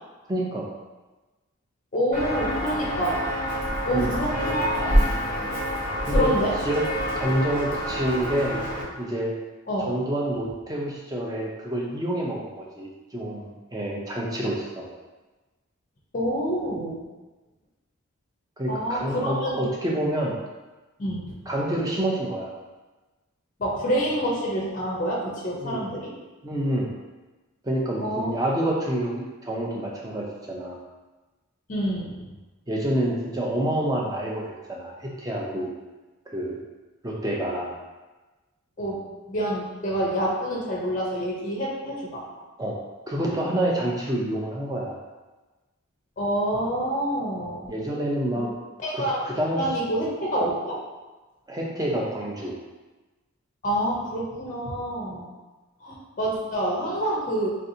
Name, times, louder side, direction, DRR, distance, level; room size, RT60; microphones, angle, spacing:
voice 1, 0.3-0.7 3.9-4.1 6.1-6.3 6.6-6.8 7.1-8.6 9.0-9.3 9.8-14.9 18.6-20.3 21.5-22.5 25.6-25.9 26.4-26.9 27.6-30.8 32.7-35.7 36.3-36.6 37.0-37.7 42.6-42.7 43.1-45.0 47.7-48.5 48.9-49.6 51.5-52.5, right 1 dB, 15° right, -3 dB, 0.4 m, -28 dB
voice 2, 1.9-3.2 3.8-5.1 6.1-6.6 9.7-9.9 16.1-17.0 18.7-19.7 21.0-21.3 23.6-26.1 28.0-28.3 31.7-32.2 38.8-39.0 39.3-42.2 46.2-47.7 48.3-48.4 48.8-50.8 53.6-55.3 55.8-57.6, equal, 35° left, -3 dB, 0.5 m, -27 dB
Walk footsteps, 2.1-8.8, equal, 35° right, 0.8 m, -27 dB
3.3 x 2.7 x 2.6 m, 1.2 s
head